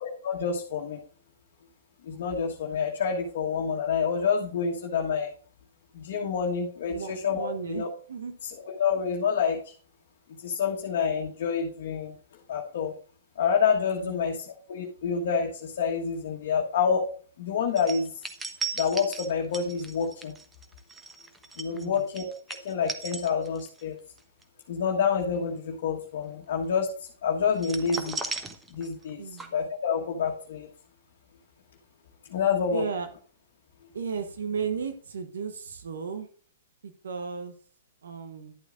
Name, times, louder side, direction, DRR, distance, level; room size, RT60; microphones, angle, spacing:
voice 1, 0.0-1.0 2.0-5.3 5.9-7.9 8.6-9.7 10.3-12.9 13.4-17.1 17.4-18.2 18.7-20.3 21.6-22.3 22.6-24.0 24.7-28.2 28.7-29.2 29.5-30.7 32.3-32.8, left 6 dB, 60° left, -1 dB, 1.5 m, -28 dB
voice 2, 6.9-8.3 14.0-14.2 21.7-22.1 29.2-29.5 32.7-33.1 33.9-36.3 36.8-37.5 38.0-38.6, right 5 dB, 75° right, 8 dB, 1.1 m, -34 dB
sound 1, 17.8-23.8 24.2-24.4 27.6-29.1 29.4-29.5, right 4 dB, 10° right, 1.1 m, -36 dB
11.0 x 8.1 x 2.6 m, 0.43 s
hypercardioid pair, 125°, 0 cm